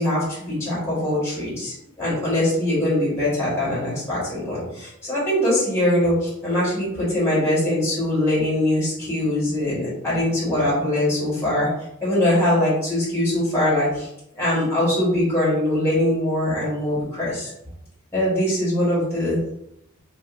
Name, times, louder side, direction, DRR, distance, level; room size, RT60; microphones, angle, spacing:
voice 1, 0.0-11.7 12.0-14.1 14.3-17.5 18.1-19.4, left 1 dB, 15° left, -10 dB, 1.4 m, -22 dB
4.2 x 2.5 x 2.5 m, 0.78 s
head